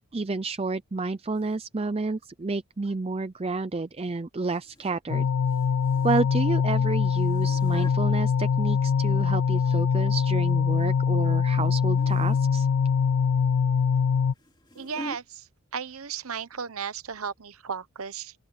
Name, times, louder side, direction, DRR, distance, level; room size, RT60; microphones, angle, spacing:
voice 1, 0.0-5.3 6.0-12.7, right 3 dB, 25° right, 0.5 m, -30 dB
sound 1, 1.4-1.6 4.5-4.9 5.2-6.4 7.0-8.0 9.0-9.8 10.2-10.5 11.5-11.7 12.0-12.5 14.0-15.2 16.1-16.3 16.5-16.6 17.2-17.3, equal, 20° left, 2.6 m, -45 dB
sound 2, 5.1-14.3, left 6 dB, 80° left, 0.4 m, -23 dB
voice 2, 14.7-18.3, right 6 dB, 70° right, 0.9 m, -35 dB
open air
head